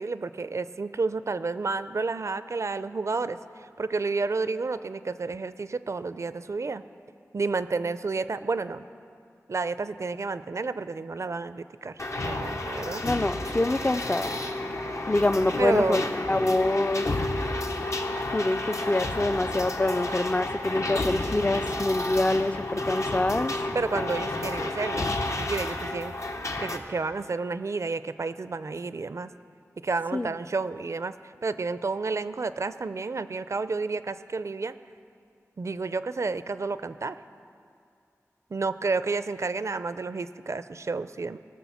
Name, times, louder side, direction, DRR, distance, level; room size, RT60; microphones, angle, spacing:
voice 1, 0.0-6.8 7.3-8.9 9.5-13.0 15.6-16.0 23.7-26.1 26.6-29.3 29.8-34.7 35.6-37.2 38.5-41.4, right 4 dB, 60° right, 13 dB, 0.4 m, -30 dB
sound 1, 12.0-26.8, left 2 dB, 60° left, 0.8 m, -31 dB
voice 2, 13.0-14.3 15.1-17.1 18.3-23.5 30.1-30.4, left 2 dB, 25° left, 13 dB, 0.4 m, -26 dB
18.0 x 6.1 x 7.1 m, 2.4 s
wide cardioid pair, 70°, 6 cm